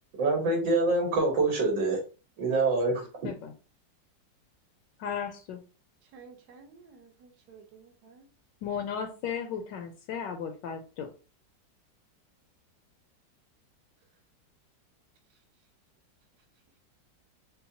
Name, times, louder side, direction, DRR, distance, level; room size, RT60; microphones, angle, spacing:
voice 1, 0.2-2.0 2.4-3.0, right 3 dB, 90° right, 0 dB, 2.1 m, -25 dB
voice 2, 5.0-5.6 8.6-11.1, left 7 dB, 75° left, 6 dB, 1.2 m, -35 dB
voice 3, 6.1-8.3, right 5 dB, 65° right, 3 dB, 1.2 m, -53 dB
5.3 x 2.2 x 2.8 m, 0.34 s
omnidirectional pair, 2.0 m